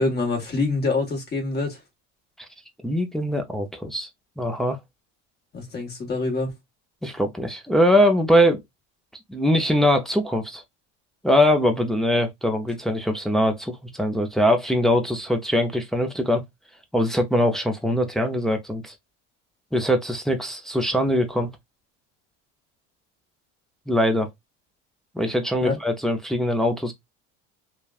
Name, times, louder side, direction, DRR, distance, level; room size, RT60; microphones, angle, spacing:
voice 1, 0.0-1.8 5.5-6.5 25.6-25.8, left 3 dB, 30° left, 1.4 m, -25 dB
voice 2, 2.8-4.1 4.4-4.8 7.0-8.6 9.3-10.6 11.2-16.4 16.9-18.9 19.7-21.5 23.9-24.3 25.1-26.9, equal, ahead, 0.5 m, -22 dB
3.1 x 2.3 x 2.3 m
supercardioid pair, 105°, 35 cm